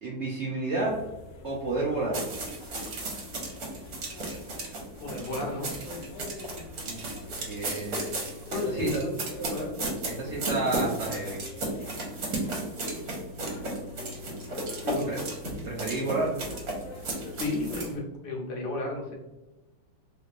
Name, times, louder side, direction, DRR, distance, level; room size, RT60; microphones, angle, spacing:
voice 1, 0.0-1.0 1.4-2.3 6.8-8.0 8.6-8.9 10.2-11.4 15.1-15.2 15.6-16.3, right 2 dB, 80° right, -4 dB, 0.6 m, -30 dB
sound 1, 0.8-17.9, left 3 dB, 90° left, 0.7 m, -45 dB
sound 2, 2.1-17.9, right 2 dB, 60° right, 1.3 m, -34 dB
voice 2, 5.0-5.7 8.5-9.8 10.1-10.4 14.8-15.2 17.3-19.1, left 2 dB, 70° left, -1 dB, 1.4 m, -33 dB
3.3 x 3.1 x 2.4 m, 1.0 s
omnidirectional pair, 2.0 m